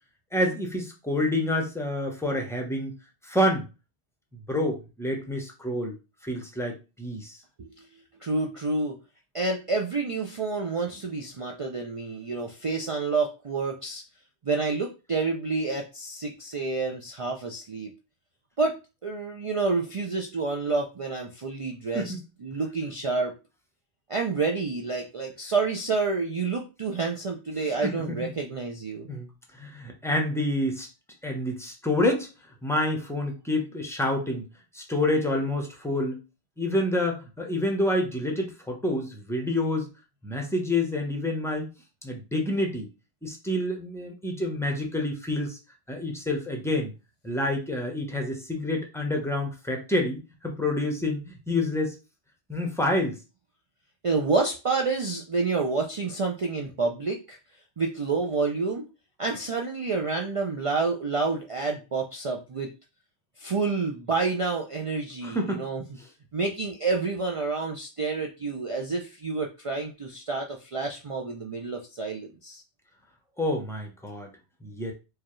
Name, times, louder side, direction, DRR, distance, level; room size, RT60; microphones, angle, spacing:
voice 1, 0.3-3.0 3.2-3.7 4.5-5.9 6.2-7.4 21.9-22.2 27.6-28.2 29.1-29.3 29.5-30.9 31.2-32.3 32.6-34.5 34.7-36.2 36.6-39.9 40.2-41.7 42.0-42.9 43.2-45.6 45.9-46.9 47.2-51.9 52.5-53.2 65.2-65.6 73.4-74.3 74.6-74.9, left 1 dB, 5° left, 2 dB, 0.7 m, -28 dB
voice 2, 8.2-9.0 9.3-14.0 14.4-17.9 18.6-22.1 22.4-23.4 24.1-29.1 54.0-57.4 57.8-58.9 59.2-62.7 63.4-65.8 66.3-72.6, right 4 dB, 50° right, 1 dB, 0.4 m, -29 dB
4.7 x 2.3 x 3.0 m, 0.30 s
omnidirectional pair, 1.1 m